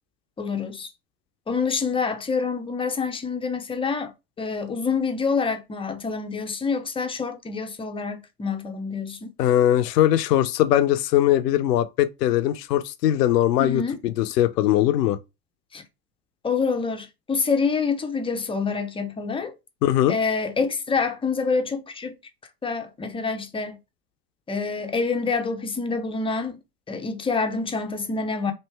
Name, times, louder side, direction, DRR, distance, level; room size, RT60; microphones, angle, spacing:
voice 1, 0.4-0.9 1.5-9.3 13.6-14.0 15.7-15.8 16.4-19.5 20.1-22.2 22.6-23.8 24.5-26.6 26.9-28.5, left 5 dB, 10° left, 0.5 m, -27 dB
voice 2, 9.4-15.2 19.8-20.2, left 12 dB, 75° left, 0.6 m, -21 dB
3.2 x 2.6 x 3.3 m
hypercardioid pair, 80°, 48 cm